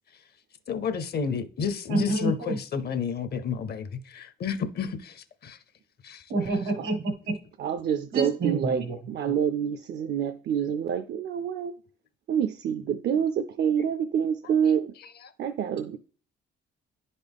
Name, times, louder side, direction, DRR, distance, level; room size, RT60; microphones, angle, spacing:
voice 1, 0.7-5.6 6.0-6.2, left 6 dB, 55° left, 0.7 m, -31 dB
voice 2, 1.9-2.6 6.3-7.4 8.1-8.9, right 3 dB, 85° right, 1.6 m, -28 dB
voice 3, 7.6-11.7 12.3-14.9 15.4-16.0, right 8 dB, 55° right, 0.5 m, -27 dB
10.0 x 4.1 x 3.5 m
cardioid pair, 90°, 20 cm